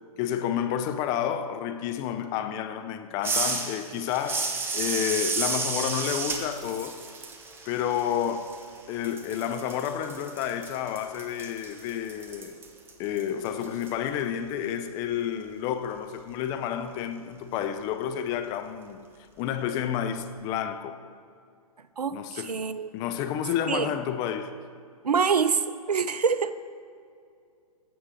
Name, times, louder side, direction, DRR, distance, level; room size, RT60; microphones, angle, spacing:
voice 1, 0.2-7.0 7.6-8.5 8.9-12.6 13.0-19.1 19.4-21.0 22.1-22.5 22.9-24.5, left 9 dB, 20° left, 0.4 m, -30 dB
sound 1, 3.2-8.8 9.0-13.9, right 4 dB, 10° right, 0.8 m, -32 dB
voice 2, 22.0-22.9 23.7-23.9 25.0-26.5, right 6 dB, 85° right, 0.6 m, -26 dB
15.5 x 6.3 x 3.7 m
figure-of-eight pair, 125°, 20 cm